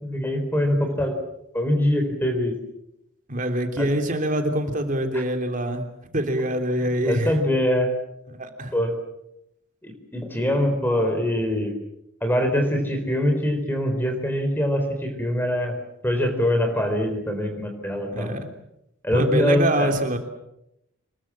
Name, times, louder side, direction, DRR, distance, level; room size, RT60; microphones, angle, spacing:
voice 1, 0.0-1.1 1.5-2.5 3.8-3.9 7.0-7.9 8.7-8.9 9.8-11.7 12.2-15.8 16.0-18.3 19.0-19.9, equal, 10° left, 5 dB, 4.3 m, -23 dB
voice 2, 3.3-5.8 6.1-7.4 8.3-8.7 18.1-18.5 19.1-20.2, right 1 dB, 40° right, 5 dB, 3.2 m, -25 dB
26.5 x 22.0 x 7.5 m, 0.82 s
head